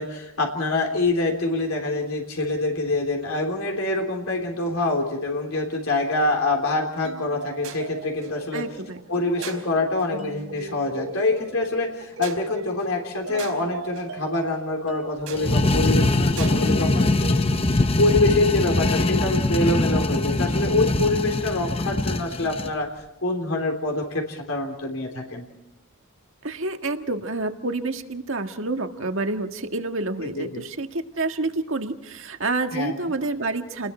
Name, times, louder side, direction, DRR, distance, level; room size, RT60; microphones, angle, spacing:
voice 1, 0.0-8.6 9.1-17.2 17.7-22.9 23.2-25.4 30.2-30.6 32.7-33.0, left 2 dB, 75° left, 1 dB, 3.4 m, -25 dB
sound 1, 7.0-19.2, right 3 dB, 85° right, 4.3 m, -38 dB
voice 2, 8.5-9.0 26.4-33.9, right 2 dB, 65° right, 5 dB, 1.8 m, -28 dB
sound 2, 15.3-22.7, left 2 dB, 25° left, 0.8 m, -22 dB
30.0 x 20.0 x 4.4 m, 0.87 s
head